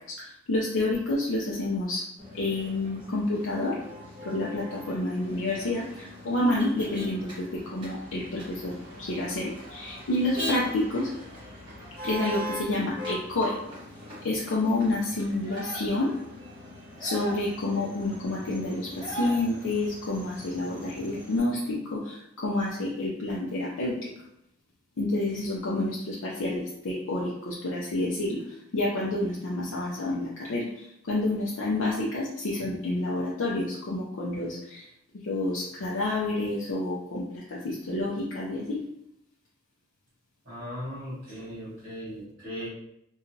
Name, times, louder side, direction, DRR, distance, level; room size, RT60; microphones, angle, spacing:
voice 1, 0.1-2.0 2.3-3.8 4.2-11.1 12.0-13.6 14.2-16.1 17.0-24.1 25.0-28.4 28.7-34.8 35.2-38.8, left 2 dB, 75° left, -5 dB, 0.5 m, -29 dB
Motor vehicle (road), 2.2-21.4, equal, 20° right, 1.1 m, -41 dB
voice 2, 40.4-42.7, equal, 45° right, -13 dB, 1.3 m, -38 dB
2.9 x 2.3 x 2.7 m, 0.79 s
head